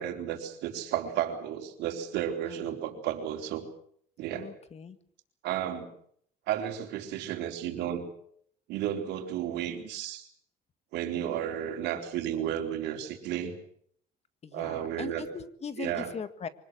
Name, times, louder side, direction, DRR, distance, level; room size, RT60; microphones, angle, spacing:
voice 1, 0.0-3.6 4.2-4.5 5.4-5.9 6.5-8.1 8.7-10.3 10.9-13.6 14.5-15.3 15.8-16.1, right 10 dB, 85° right, 5 dB, 4.1 m, -33 dB
voice 2, 2.4-2.8 4.3-5.0 14.4-16.5, left 6 dB, 40° left, 12 dB, 1.8 m, -40 dB
25.0 x 19.0 x 7.9 m, 0.64 s
cardioid pair, 110°, 17 cm